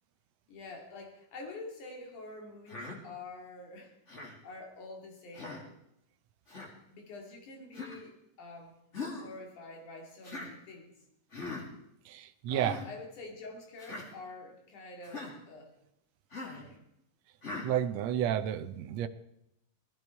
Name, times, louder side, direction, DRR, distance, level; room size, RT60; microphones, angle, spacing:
voice 1, 0.5-4.0 4.4-5.6 6.9-8.8 9.2-10.9 12.4-15.8 16.4-16.9, left 3 dB, 70° left, 2 dB, 4.0 m, -47 dB
Human voice, 2.7-3.0 4.1-4.4 5.3-5.7 6.5-6.7 7.7-8.0 8.9-9.3 10.2-10.5 11.3-11.6 12.5-12.8 13.8-14.1 15.0-15.3 16.3-16.6 17.4-17.7, left 3 dB, 25° left, 2.3 m, -41 dB
voice 2, 12.1-12.8 17.6-19.1, right 10 dB, 70° right, 9 dB, 1.7 m, -31 dB
18.5 x 14.0 x 4.6 m, 0.81 s
omnidirectional pair, 3.7 m